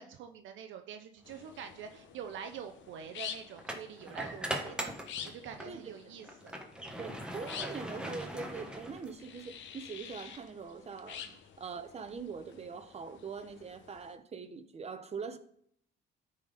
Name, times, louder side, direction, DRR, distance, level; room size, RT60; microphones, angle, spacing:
voice 1, 0.0-4.9 5.2-6.5 11.3-11.4, right 8 dB, 65° right, 0.7 m, -46 dB
sound 1, 1.2-14.2, left 8 dB, 65° left, 0.9 m, -49 dB
sound 2, 1.5-1.7 3.6-5.8 6.2-9.4, right 1 dB, 5° right, 1.2 m, -40 dB
voice 2, 7.0-15.4, right 5 dB, 30° right, 0.9 m, -43 dB
12.0 x 4.2 x 5.0 m
cardioid pair, 105°, 21 cm